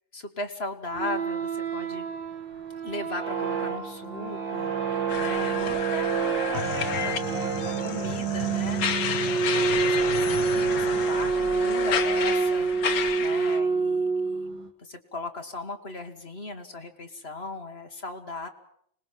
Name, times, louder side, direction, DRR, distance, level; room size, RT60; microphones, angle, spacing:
voice 1, 0.1-2.1 2.8-7.3 7.6-18.5, left 2 dB, 35° left, 5 dB, 1.8 m, -38 dB
sound 1, 0.9-14.7, right 5 dB, 70° right, 2.7 m, -27 dB
sound 2, 5.1-13.6, left 8 dB, 65° left, 1.8 m, -32 dB
sound 3, 6.5-11.4, left 8 dB, 90° left, 2.2 m, -38 dB
25.5 x 20.0 x 7.5 m, 0.67 s
omnidirectional pair, 2.1 m